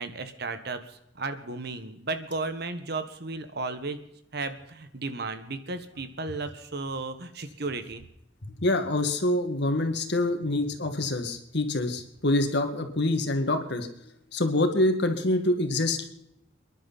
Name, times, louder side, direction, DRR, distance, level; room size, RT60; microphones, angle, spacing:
voice 1, 0.0-4.0 4.3-8.0, right 3 dB, 55° right, 9 dB, 1.4 m, -34 dB
voice 2, 8.6-13.9 14.3-16.1, left 2 dB, 60° left, 6 dB, 2.0 m, -26 dB
28.5 x 11.0 x 4.2 m, 0.79 s
head